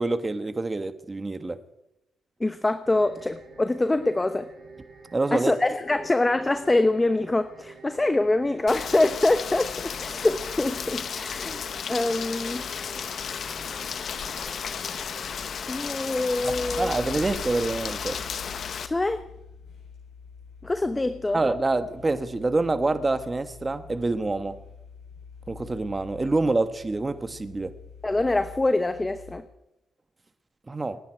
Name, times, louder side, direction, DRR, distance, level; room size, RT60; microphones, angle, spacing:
voice 1, 0.0-1.6 5.1-5.5 16.4-18.2 21.3-24.6 25.5-27.7 30.7-31.0, right 2 dB, 20° right, 10 dB, 1.4 m, -26 dB
voice 2, 2.4-4.5 5.3-11.6 11.9-12.7 15.7-16.9 18.8-19.2 20.6-21.4 28.0-29.4, left 2 dB, 15° left, 10 dB, 0.9 m, -24 dB
sound 1, 2.8-15.4, right 4 dB, 60° right, 6.2 m, -49 dB
Rain, 8.7-18.9, left 7 dB, 55° left, 0.9 m, -34 dB
sound 2, 16.4-29.3, left 5 dB, 80° left, 7.7 m, -45 dB
28.0 x 10.5 x 4.6 m, 0.90 s
cardioid pair, 90°, 0 cm